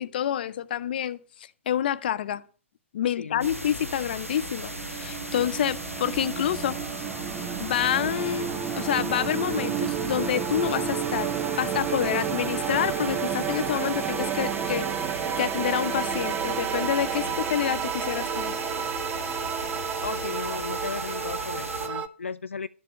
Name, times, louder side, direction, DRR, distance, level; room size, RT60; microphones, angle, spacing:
voice 1, 0.0-2.4 2.9-6.8 7.6-8.5 8.8-18.6, left 10 dB, 45° left, 0.9 m, -28 dB
voice 2, 3.2-3.8 17.2-17.3 20.0-22.7, left 5 dB, 70° left, 0.5 m, -36 dB
sound 1, 3.4-21.9, right 1 dB, 90° right, 2.1 m, -37 dB
sound 2, 3.7-22.1, right 8 dB, 20° right, 1.0 m, -31 dB
12.5 x 7.5 x 6.4 m
figure-of-eight pair, 120°, 7 cm